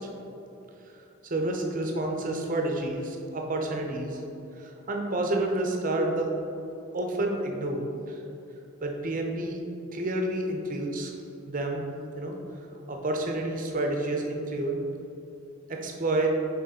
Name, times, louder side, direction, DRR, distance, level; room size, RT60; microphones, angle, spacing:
voice 1, 1.2-4.2 4.6-6.3 6.9-8.2 8.8-9.6 9.9-11.1 11.5-11.9 12.2-12.4 12.9-14.8 15.7-16.3, right 2 dB, 45° right, 2 dB, 0.8 m, -29 dB
6.4 x 4.3 x 4.2 m, 2.9 s
head